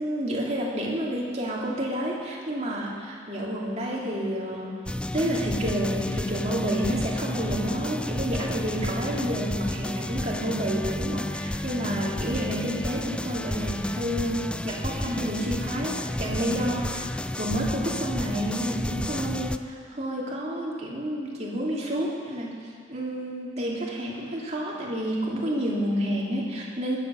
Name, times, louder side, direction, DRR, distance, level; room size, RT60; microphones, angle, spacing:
voice 1, 0.0-4.8 5.1-17.1 17.4-22.6 22.9-27.0, equal, 40° right, -4 dB, 2.8 m, -29 dB
sound 1, 4.9-19.6, left 1 dB, 5° left, 0.3 m, -31 dB
21.5 x 8.1 x 7.0 m, 2.2 s
head